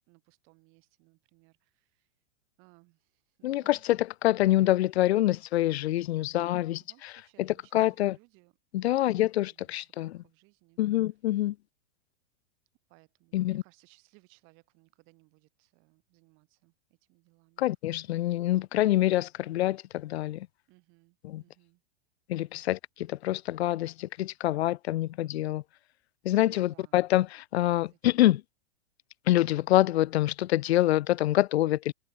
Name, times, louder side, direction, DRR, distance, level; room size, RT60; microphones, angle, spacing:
voice 1, 0.1-2.1 2.6-3.9 6.2-8.6 9.0-9.2 9.4-10.8 11.3-11.5 12.9-17.7 20.7-21.8 22.4-22.7 26.4-27.0 27.8-28.3, right 28 dB, 40° right, 6.9 m, -63 dB
voice 2, 3.4-7.1 7.4-8.2 8.7-10.1 10.8-11.5 13.3-13.6 17.6-20.5 21.2-21.4 22.3-25.6 26.2-28.4 29.3-31.9, left 15 dB, 70° left, 0.7 m, -26 dB
supercardioid pair, 150°, 33 cm